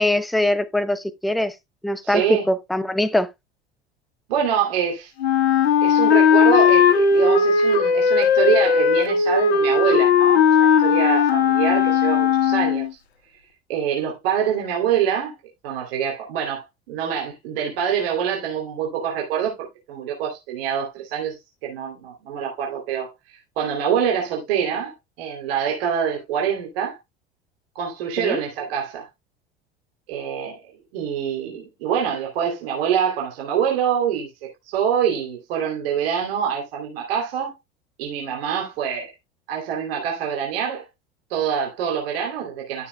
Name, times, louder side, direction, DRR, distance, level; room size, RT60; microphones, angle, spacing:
voice 1, 0.0-1.5 1.8-3.3 28.2-28.4, left 1 dB, ahead, 0.7 m, -22 dB
voice 2, 2.0-2.4 4.3-5.1 5.8-13.0 13.7-15.4 15.6-27.0 27.7-29.1 30.1-30.6 30.9-37.5 38.0-39.1 39.5-40.9 41.3-42.9, right 8 dB, 65° right, 2.8 m, -25 dB
Wind instrument woodwind instrument, 5.2-12.9, left 6 dB, 75° left, 1.6 m, -17 dB
12.5 x 7.1 x 2.2 m
figure-of-eight pair, 75°, 31 cm